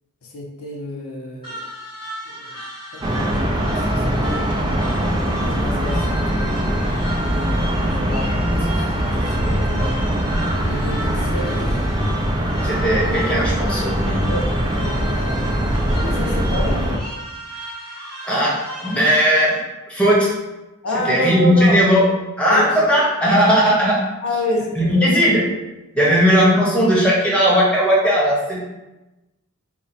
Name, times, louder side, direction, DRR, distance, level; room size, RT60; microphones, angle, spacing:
voice 1, 0.2-1.6 2.3-2.6 2.9-6.2 7.1-10.0 10.6-11.9 14.3-14.4 14.8-15.5 15.9-17.0 20.8-21.8 22.5-22.8 24.2-25.2 26.0-26.2, left 1 dB, 75° left, -1 dB, 0.7 m, -29 dB
sound 1, 1.4-19.2, right 1 dB, 20° left, 1.2 m, -35 dB
sound 2, 3.0-17.0, equal, 20° right, 0.4 m, -21 dB
voice 2, 12.6-14.3 18.2-19.6 19.9-20.3 21.0-22.0 22.4-24.0 24.7-25.4 25.9-28.6, equal, 5° left, -7 dB, 1.0 m, -17 dB
4.3 x 2.0 x 4.2 m, 1.0 s
head